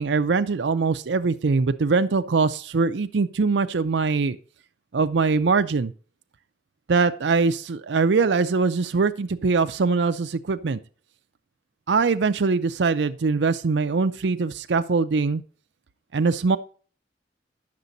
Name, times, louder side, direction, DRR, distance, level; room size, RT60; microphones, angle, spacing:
voice 1, 0.0-4.4 4.9-5.9 6.9-10.8 11.9-15.4 16.1-16.6, right 4 dB, 85° right, 10 dB, 0.5 m, -22 dB
9.6 x 6.7 x 3.9 m, 0.40 s
head